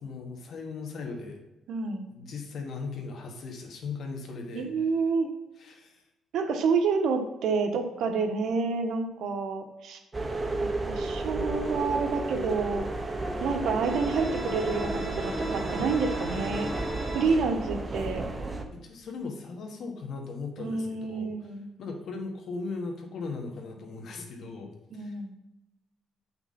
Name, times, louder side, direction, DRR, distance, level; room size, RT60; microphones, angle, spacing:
voice 1, 0.0-1.4 2.1-4.7 5.6-6.0 17.1-17.7 18.7-21.3 21.8-25.4, left 4 dB, 60° left, 2 dB, 1.8 m, -38 dB
voice 2, 1.7-2.1 4.5-5.3 6.3-10.0 10.6-12.9 13.4-16.7 17.1-18.2 20.6-21.7 25.0-25.3, right 4 dB, 75° right, 5 dB, 1.2 m, -28 dB
sound 1, 10.1-18.6, right 2 dB, 20° right, 1.0 m, -32 dB
sound 2, 13.8-17.2, right 1 dB, 35° right, 2.7 m, -38 dB
8.9 x 5.8 x 4.3 m, 0.97 s
cardioid pair, 120°, 0 cm